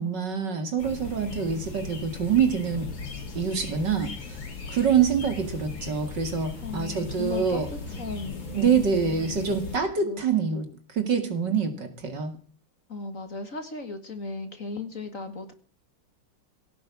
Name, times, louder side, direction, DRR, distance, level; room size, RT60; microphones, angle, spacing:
voice 1, 0.0-2.9 3.3-4.1 4.7-7.7 8.5-12.3, right 6 dB, 55° right, 7 dB, 2.7 m, -25 dB
sound 1, 0.8-9.8, left 3 dB, 80° left, 4.3 m, -38 dB
voice 2, 6.6-7.6 8.0-9.5 10.0-10.2 12.9-15.5, left 3 dB, 40° left, 8 dB, 2.1 m, -36 dB
17.0 x 7.5 x 8.5 m, 0.41 s
omnidirectional pair, 2.4 m